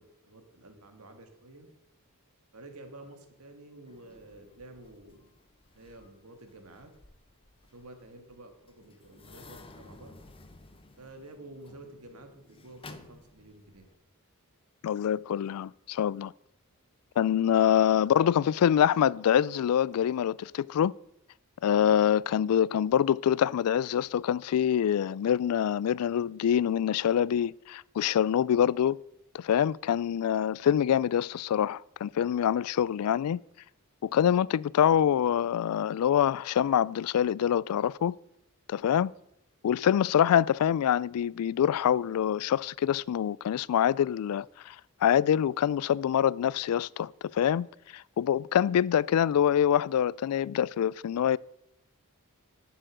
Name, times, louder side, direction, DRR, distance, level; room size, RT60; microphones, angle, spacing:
voice 1, 0.0-1.7 2.5-5.3 5.7-6.9 7.6-10.2 11.0-13.9 18.0-18.1, right 2 dB, 75° right, 1.9 m, -50 dB
sound 1, 3.9-14.0, left 3 dB, 25° left, 0.8 m, -54 dB
voice 2, 14.8-16.3 17.2-20.9 21.6-29.0 29.3-33.4 34.0-38.1 38.7-39.1 39.6-44.8 45.0-47.7 47.9-51.4, left 9 dB, 75° left, 0.3 m, -25 dB
11.5 x 6.8 x 6.3 m
head